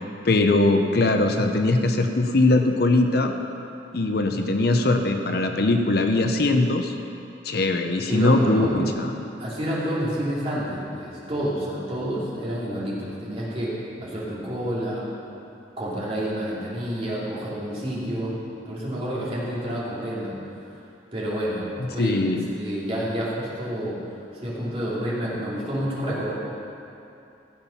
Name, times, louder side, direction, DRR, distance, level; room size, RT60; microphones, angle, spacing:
voice 1, 0.2-3.3 3.9-6.9 7.4-8.7 9.0-9.1 22.0-22.4, left 2 dB, 55° left, 5 dB, 0.7 m, -21 dB
voice 2, 8.1-8.9 9.4-15.1 15.8-18.3 18.6-20.3 21.1-24.0 24.4-26.3, equal, 30° right, -7 dB, 2.9 m, -29 dB
15.0 x 7.3 x 5.8 m, 2.7 s
head